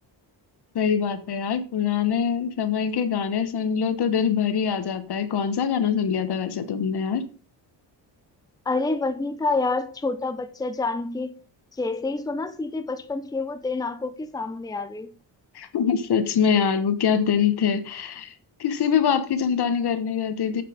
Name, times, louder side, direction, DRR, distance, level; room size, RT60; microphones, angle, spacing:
voice 1, 0.7-7.2 15.5-18.3 18.6-20.6, left 7 dB, 65° left, 1.3 m, -24 dB
voice 2, 8.7-11.4 11.8-15.1, left 3 dB, 10° left, 0.7 m, -28 dB
9.0 x 5.9 x 5.2 m
cardioid pair, 105°, 42 cm